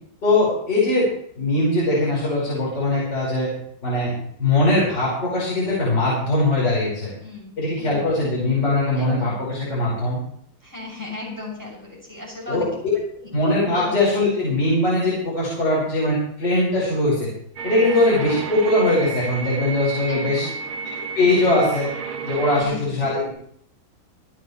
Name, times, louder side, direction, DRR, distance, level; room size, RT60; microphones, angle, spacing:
voice 1, 0.2-1.1 1.4-3.5 3.8-4.1 4.4-7.1 7.6-10.2 12.5-12.7 13.3-17.3 17.6-20.5 21.1-21.9 22.2-23.3, left 2 dB, 55° left, -7 dB, 6.0 m, -21 dB
voice 2, 7.2-8.1 9.0-9.5 10.6-12.7 13.2-13.3 13.7-13.9 17.8-18.0 20.1-20.9 22.6-22.9, left 2 dB, 10° right, -4 dB, 7.1 m, -36 dB
sound 1, 17.6-22.6, right 5 dB, 85° right, 2.0 m, -31 dB
26.0 x 9.5 x 3.3 m, 0.64 s
omnidirectional pair, 2.3 m